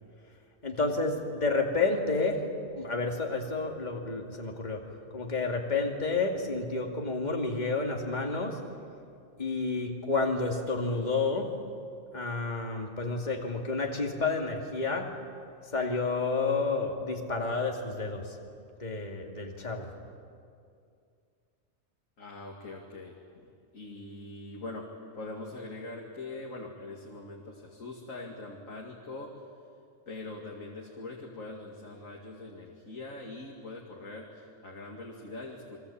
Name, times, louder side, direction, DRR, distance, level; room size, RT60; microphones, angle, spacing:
voice 1, 0.6-2.4 2.7-4.8 5.1-8.6 9.4-11.5 12.1-15.1 15.7-18.4 18.8-20.0, left 3 dB, 35° left, 2 dB, 2.5 m, -30 dB
voice 2, 22.2-23.5 23.7-24.9 25.2-29.3 30.1-35.8, left 2 dB, 90° left, -1 dB, 2.9 m, -42 dB
29.0 x 23.0 x 8.7 m, 2.4 s
omnidirectional pair, 1.3 m